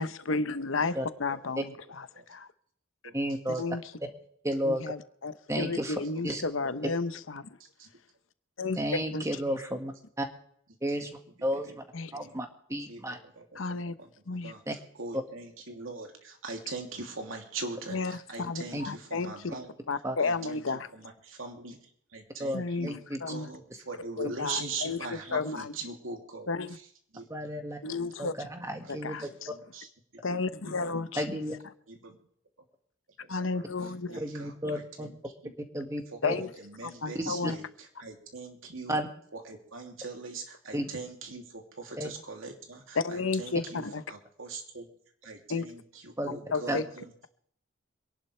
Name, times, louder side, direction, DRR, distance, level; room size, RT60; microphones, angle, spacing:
voice 1, 0.0-2.5 3.6-3.8 4.6-7.5 8.6-8.8 9.1-9.2 11.9-12.1 13.6-13.9 14.3-14.5 17.9-19.3 19.9-20.9 22.5-23.5 24.2-25.7 26.5-26.8 27.8-28.3 29.0-29.5 30.2-31.4 33.3-34.2 36.2-36.5 36.8-37.6 42.9-44.0 45.5-45.6 46.5-46.9, left 4 dB, 80° left, 0.9 m, -32 dB
voice 2, 3.1-3.6 4.4-4.8 5.5-6.0 6.2-6.4 8.8-10.3 10.8-11.8 12.1-13.2 14.7-14.8 18.7-18.8 20.0-20.2 22.4-23.2 27.3-27.8 28.2-29.2 31.2-31.6 34.2-35.1 35.7-36.3 37.1-37.5 38.9-39.1 40.7-40.9 42.0-42.1 46.2-46.3 46.7-46.8, equal, 15° right, 1.8 m, -32 dB
voice 3, 6.0-6.4 7.6-7.9 11.0-11.1 11.5-11.7 12.1-12.3 12.9-14.6 15.0-19.7 20.2-20.6 20.9-21.8 22.1-23.0 23.3-26.8 27.1-27.3 28.8-28.9 29.2-29.9 30.6-30.9 31.9-32.2 33.4-35.1 35.4-35.5 36.1-39.0 39.3-43.8 44.1-44.9 45.2-47.1, right 3 dB, 90° right, 2.9 m, -42 dB
26.5 x 11.5 x 3.3 m
head